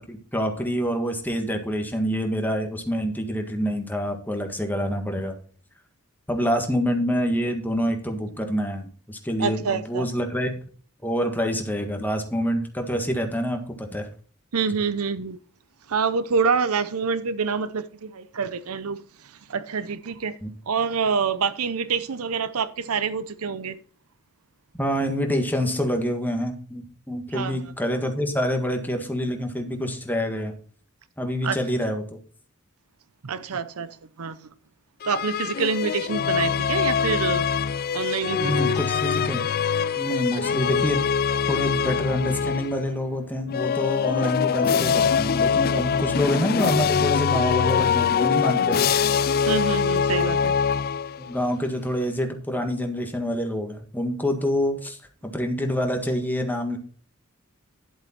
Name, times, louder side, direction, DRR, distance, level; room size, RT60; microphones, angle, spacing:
voice 1, 0.1-5.3 6.3-10.5 11.0-14.1 20.4-20.5 24.8-30.5 31.2-32.0 38.4-39.5 40.0-41.0 41.5-48.8 51.2-55.0 55.3-56.8, equal, 10° left, 1.6 m, -26 dB
voice 2, 9.4-10.1 14.5-15.4 15.9-19.0 19.5-20.4 20.7-23.8 27.3-27.6 31.4-31.6 33.2-34.4 35.0-37.5 37.9-38.6 49.5-50.5, right 5 dB, 80° right, 0.7 m, -26 dB
sound 1, 35.0-42.9 43.5-51.4, left 7 dB, 45° left, 0.4 m, -23 dB
11.0 x 7.8 x 4.4 m
head